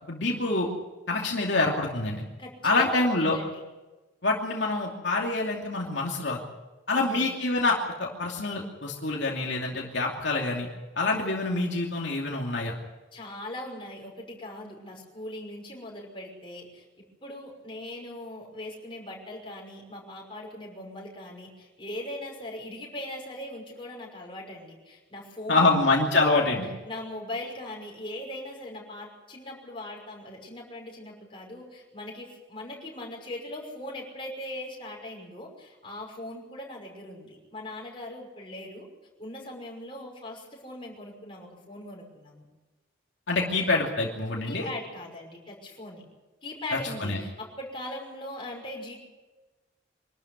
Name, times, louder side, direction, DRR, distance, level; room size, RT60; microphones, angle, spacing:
voice 1, 0.1-0.7 1.1-2.2 2.6-3.4 4.2-6.4 6.9-10.7 11.0-12.7 25.5-26.7 43.3-44.7 46.7-47.2, left 2 dB, 65° left, -2 dB, 2.8 m, -26 dB
voice 2, 2.4-3.6 6.9-7.4 13.1-16.9 17.2-25.7 26.8-38.9 39.2-42.4 44.5-46.0 46.4-48.9, left 1 dB, 25° left, -1 dB, 5.8 m, -40 dB
25.0 x 13.0 x 9.8 m, 1.2 s
head